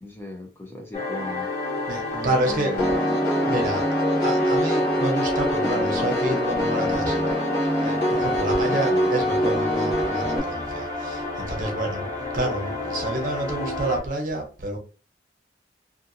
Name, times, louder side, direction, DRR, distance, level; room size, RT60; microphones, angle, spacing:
voice 1, 0.0-1.5 2.1-3.5 8.7-9.1, left 2 dB, 15° left, 1 dB, 0.4 m, -37 dB
sound 1, 0.9-14.0, left 2 dB, 40° left, 1.3 m, -32 dB
voice 2, 1.9-2.8 3.4-3.9 4.2-7.4 7.6-14.8, right 1 dB, 50° right, 1 dB, 0.8 m, -29 dB
Piano, 2.8-10.4, equal, 75° left, 0.8 m, -23 dB
2.6 x 2.5 x 2.6 m, 0.36 s
head